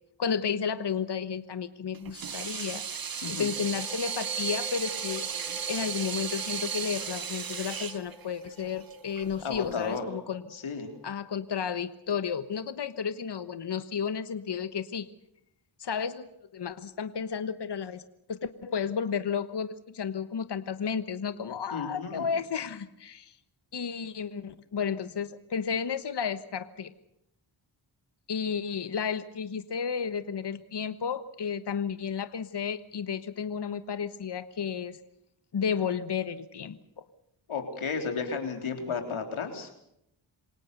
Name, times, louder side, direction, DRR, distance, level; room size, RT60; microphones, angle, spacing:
voice 1, 0.2-5.3 5.7-10.4 11.0-15.1 15.8-16.3 16.5-18.0 18.3-23.4 23.7-26.9 28.3-35.0 35.5-37.0, left 6 dB, 60° left, 12 dB, 1.3 m, -32 dB
Water tap faucet / Sink (filling or washing), 1.9-10.0, right 7 dB, 45° right, 1.2 m, -35 dB
sound 1, 3.1-12.5, left 2 dB, 5° left, 3.6 m, -49 dB
voice 2, 3.2-3.5 9.4-10.1 10.5-10.9 21.7-22.3 37.5-39.7, left 5 dB, 85° left, 4 dB, 3.8 m, -33 dB
27.5 x 18.0 x 6.8 m, 0.78 s
cardioid pair, 50°, 47 cm